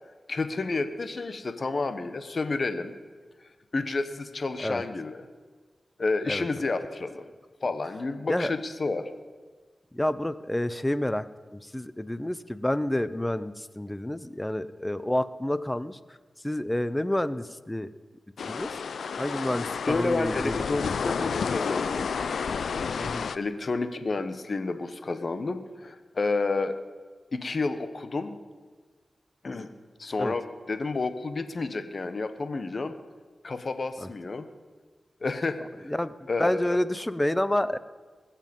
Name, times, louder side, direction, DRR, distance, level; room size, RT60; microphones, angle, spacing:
voice 1, 0.3-2.9 3.7-5.3 6.0-7.3 7.6-9.1 19.9-22.1 23.3-26.8 27.3-28.4 29.4-29.7 30.0-33.0 33.4-34.5 35.2-35.9 36.3-36.8, left 3 dB, 60° left, 10 dB, 1.1 m, -30 dB
voice 2, 9.9-11.2 11.7-16.0 16.4-17.9 18.5-18.7 19.2-20.6 23.0-23.3 30.2-30.3 34.0-34.1 35.9-36.1 36.4-37.8, left 1 dB, 15° left, 15 dB, 0.6 m, -29 dB
sound 1, 18.4-23.4, left 6 dB, 90° left, 0.4 m, -30 dB
21.5 x 7.5 x 5.4 m, 1.4 s
cardioid pair, 50°, 0 cm